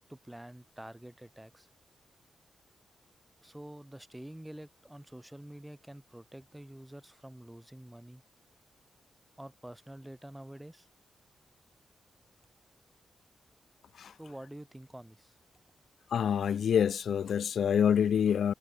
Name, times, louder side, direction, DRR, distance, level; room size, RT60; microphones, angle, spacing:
voice 1, 0.1-1.7 3.4-8.2 9.4-10.9 14.2-15.4, right 1 dB, 10° right, 3.5 m, -47 dB
voice 2, 16.1-18.5, left 8 dB, 75° left, 0.3 m, -26 dB
cardioid pair, 75°, 0 cm